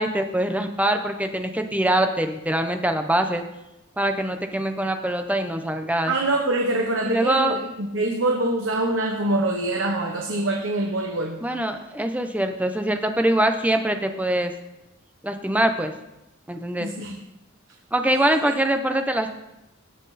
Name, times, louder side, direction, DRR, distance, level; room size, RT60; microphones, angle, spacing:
voice 1, 0.0-3.4 4.0-6.1 7.0-7.6 11.4-14.5 15.2-15.9 16.5-16.9 17.9-19.3, right 1 dB, 5° right, 6 dB, 0.8 m, -23 dB
voice 2, 6.1-11.4 16.8-17.2, right 2 dB, 70° right, 1 dB, 1.2 m, -24 dB
17.5 x 6.1 x 4.2 m, 0.91 s
head